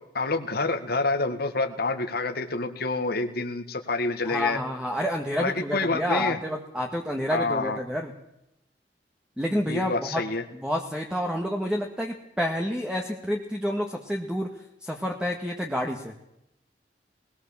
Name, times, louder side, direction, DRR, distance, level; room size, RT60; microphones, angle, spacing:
voice 1, 0.1-4.6 5.4-6.4 7.3-7.8 9.7-10.4, left 3 dB, 60° left, 6 dB, 1.8 m, -27 dB
voice 2, 4.2-8.1 9.4-10.2 10.5-14.5 14.8-16.1, equal, 5° right, 1 dB, 1.6 m, -29 dB
20.5 x 19.0 x 7.3 m, 0.84 s
head